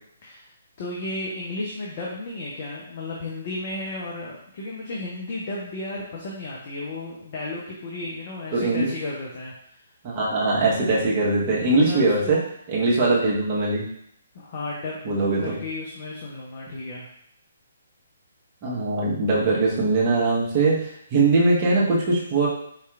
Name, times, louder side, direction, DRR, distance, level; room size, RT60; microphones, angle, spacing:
voice 1, 0.8-9.5 11.7-12.4 14.3-17.1, left 2 dB, 40° left, -4 dB, 0.6 m, -34 dB
voice 2, 8.5-8.9 10.0-12.4 12.7-13.8 15.0-15.5 18.6-22.5, right 3 dB, 30° right, -5 dB, 1.0 m, -21 dB
4.7 x 2.8 x 2.4 m, 0.69 s
figure-of-eight pair, 130°, 0 cm